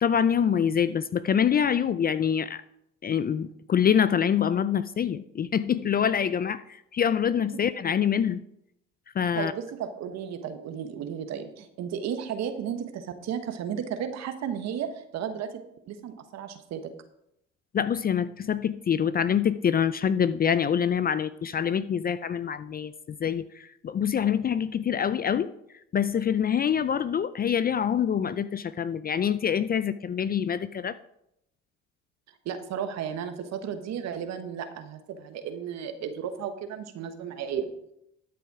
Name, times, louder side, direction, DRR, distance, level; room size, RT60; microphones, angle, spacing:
voice 1, 0.0-2.6 3.0-8.4 9.2-9.5 17.7-25.5 25.9-31.0, left 8 dB, 30° left, 15 dB, 0.4 m, -25 dB
voice 2, 9.4-15.6 15.9-16.8 32.4-37.7, right 8 dB, 65° right, 8 dB, 1.3 m, -34 dB
12.5 x 6.9 x 4.8 m, 0.78 s
supercardioid pair, 85°, 29 cm